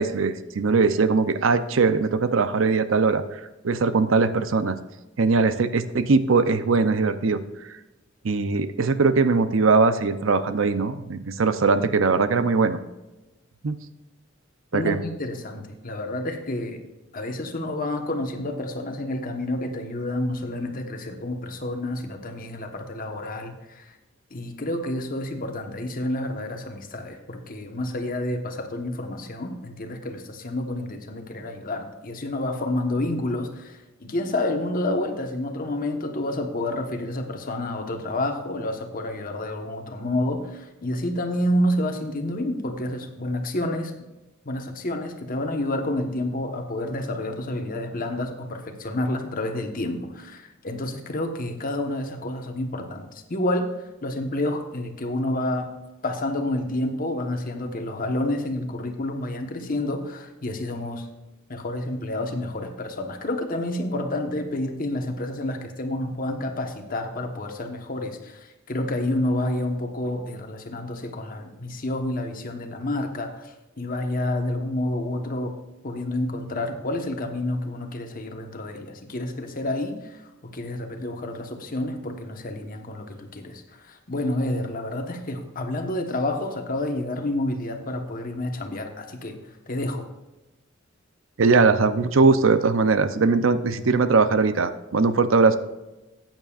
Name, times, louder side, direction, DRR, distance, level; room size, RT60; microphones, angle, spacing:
voice 1, 0.0-3.4 3.6-4.8 5.2-7.4 8.2-12.8 13.6-13.8 14.7-15.0 91.4-95.6, right 4 dB, 70° right, 12 dB, 0.6 m, -20 dB
voice 2, 14.7-16.8 17.1-24.0 24.3-43.9 44.4-55.7 56.0-61.1 61.5-75.5 75.8-89.4 89.7-90.1, left 1 dB, 45° left, 4 dB, 1.2 m, -29 dB
14.0 x 9.0 x 2.5 m, 1.0 s
head